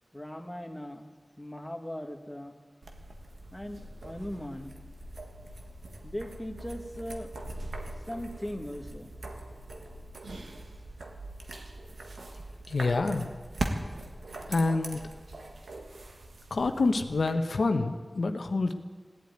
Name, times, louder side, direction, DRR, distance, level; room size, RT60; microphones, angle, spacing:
voice 1, 0.1-2.6 3.5-4.8 6.0-7.3 8.1-9.1, equal, 15° left, 4 dB, 1.7 m, -39 dB
sound 1, 2.8-17.3, right 2 dB, 90° right, 1.6 m, -41 dB
voice 2, 12.7-13.3 14.5-15.0 16.5-18.7, left 3 dB, 90° left, 6 dB, 0.9 m, -27 dB
17.5 x 8.5 x 9.4 m, 1.4 s
wide cardioid pair, 45°, 0 cm